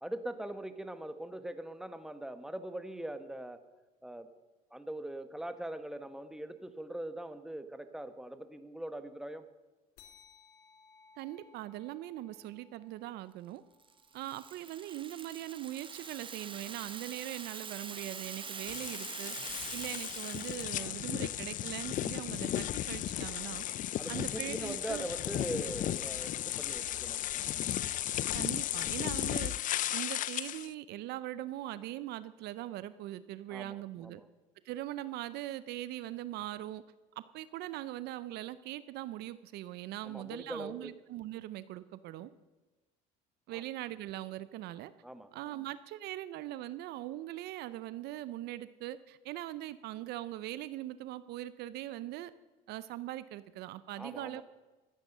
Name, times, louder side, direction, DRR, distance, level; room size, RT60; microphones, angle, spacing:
voice 1, 0.0-3.6 4.0-4.3 4.7-9.5 20.7-20.9 24.0-27.2 33.5-34.3 40.0-40.9 43.5-43.6 45.0-45.3 54.0-54.4, right 1 dB, 5° right, 10 dB, 1.1 m, -42 dB
sound 1, 10.0-14.9, left 5 dB, 75° left, 2.0 m, -62 dB
voice 2, 11.2-13.6 14.1-19.4 19.7-23.7 24.1-25.1 28.3-29.5 29.9-34.2 34.6-36.8 37.2-42.3 43.5-44.9 45.3-52.3 52.7-54.4, right 14 dB, 65° right, 15 dB, 0.6 m, -41 dB
Rattle (instrument), 13.8-20.8, right 5 dB, 30° right, 1.2 m, -44 dB
sound 2, 18.7-30.7, left 12 dB, 50° left, 0.4 m, -35 dB
13.5 x 9.2 x 6.7 m, 1.2 s
supercardioid pair, 85°, 18 cm